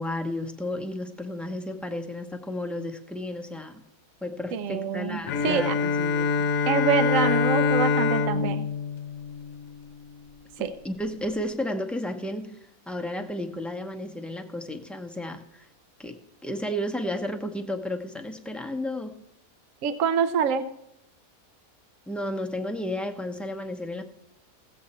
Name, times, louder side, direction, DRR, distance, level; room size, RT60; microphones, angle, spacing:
voice 1, 0.0-3.8 4.2-6.5 10.8-15.7 16.0-19.1 22.1-24.0, left 1 dB, ahead, 2 dB, 0.6 m, -33 dB
voice 2, 4.5-5.8 6.7-8.7 10.6-10.7 19.8-20.7, right 7 dB, 70° right, 11 dB, 1.1 m, -26 dB
Bowed string instrument, 5.3-10.0, left 5 dB, 70° left, 1.1 m, -25 dB
16.5 x 7.7 x 4.2 m, 0.80 s
omnidirectional pair, 1.5 m